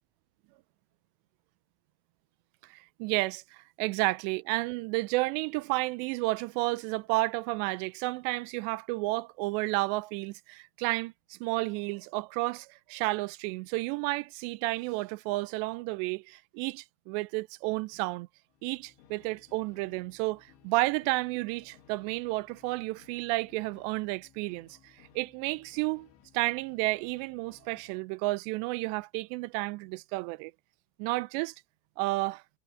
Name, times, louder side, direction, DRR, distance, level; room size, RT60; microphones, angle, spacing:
voice 1, 2.7-18.3 18.6-26.1 26.3-30.5 31.0-31.5 32.0-32.4, right 22 dB, 85° right, 2.7 m, -31 dB
sound 1, 18.5-28.1, left 9 dB, 85° left, 4.2 m, -61 dB
omnidirectional pair, 5.1 m